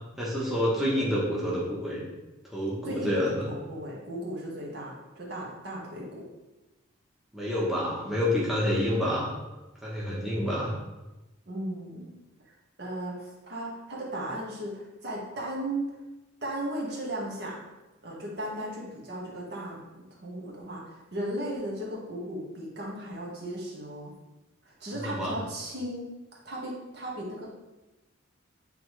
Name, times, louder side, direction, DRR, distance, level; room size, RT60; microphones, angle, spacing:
voice 1, 0.2-2.1 2.5-3.5 7.3-9.3 9.8-10.7 25.0-25.3, left 1 dB, ahead, -7 dB, 1.1 m, -28 dB
voice 2, 2.8-6.3 11.5-12.1 12.4-12.5 12.8-15.8 16.4-17.6 18.0-24.1 24.6-26.1 26.4-27.5, right 1 dB, 55° right, -4 dB, 1.6 m, -36 dB
8.5 x 3.6 x 3.2 m, 1.0 s
head